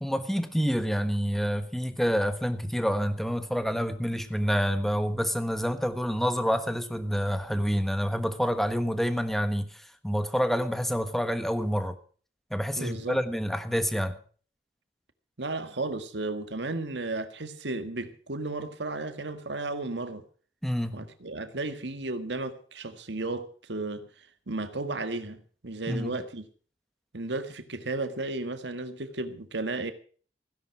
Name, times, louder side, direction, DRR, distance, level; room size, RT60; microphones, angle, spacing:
voice 1, 0.0-12.0 12.5-14.2 20.6-21.0 25.9-26.1, equal, ahead, 1.3 m, -28 dB
voice 2, 12.8-13.2 15.4-20.2 20.9-24.1 24.5-26.5 27.1-29.9, right 2 dB, 85° right, 1.7 m, -34 dB
16.0 x 10.5 x 6.0 m
head